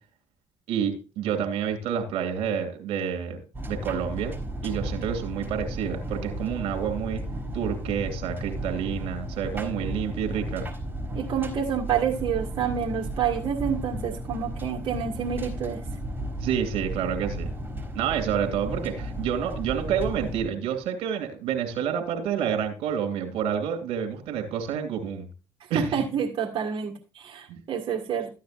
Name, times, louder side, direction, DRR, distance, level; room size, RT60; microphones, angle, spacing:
voice 1, 0.7-3.4 3.7-4.3 4.6-7.2 7.5-10.7 16.4-17.5 17.9-25.3 25.7-26.0 27.5-27.6, right 8 dB, 75° right, 5 dB, 2.6 m, -28 dB
sound 1, 3.5-20.4, right 1 dB, 20° right, 4.1 m, -34 dB
voice 2, 11.1-15.8 25.7-28.3, right 8 dB, 55° right, -1 dB, 2.0 m, -28 dB
13.5 x 9.4 x 2.5 m, 0.32 s
supercardioid pair, 60°, 11 cm